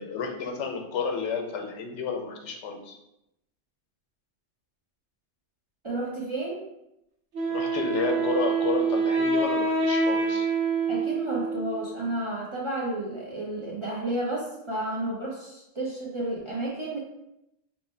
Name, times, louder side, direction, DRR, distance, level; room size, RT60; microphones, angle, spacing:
voice 1, 0.0-3.0 7.5-10.5, left 5 dB, 85° left, 4 dB, 0.9 m, -31 dB
voice 2, 5.8-6.6 10.9-17.0, right 1 dB, 40° right, -4 dB, 0.4 m, -31 dB
Wind instrument woodwind instrument, 7.3-12.1, right 3 dB, 90° right, 1.1 m, -26 dB
3.1 x 2.1 x 4.2 m, 0.84 s
omnidirectional pair, 1.2 m